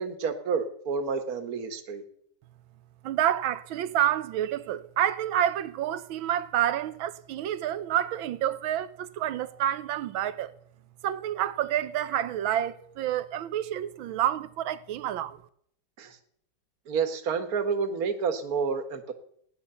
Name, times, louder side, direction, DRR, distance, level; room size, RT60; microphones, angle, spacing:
voice 1, 0.0-2.0 16.0-16.2 16.9-19.1, right 5 dB, 50° right, 1.8 m, -29 dB
voice 2, 3.0-10.5 11.0-15.4, right 11 dB, 90° right, 1.6 m, -28 dB
17.0 x 10.5 x 6.9 m
omnidirectional pair, 2.1 m